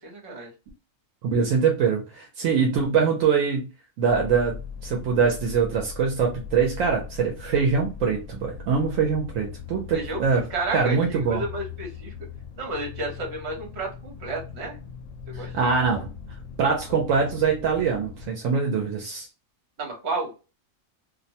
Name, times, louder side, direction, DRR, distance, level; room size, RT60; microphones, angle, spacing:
voice 1, 0.0-0.5 9.9-10.2 10.5-12.1 12.6-14.8 15.3-15.7 19.8-20.3, right 2 dB, 55° right, 1 dB, 1.2 m, -32 dB
voice 2, 1.2-3.7 4.0-4.6 4.8-10.4 10.7-11.4 15.3-16.1 16.6-19.3, right 6 dB, 80° right, 1 dB, 1.0 m, -23 dB
sound 1, 4.1-18.3, left 7 dB, 75° left, 0.9 m, -40 dB
2.6 x 2.1 x 2.7 m, 0.31 s
omnidirectional pair, 1.4 m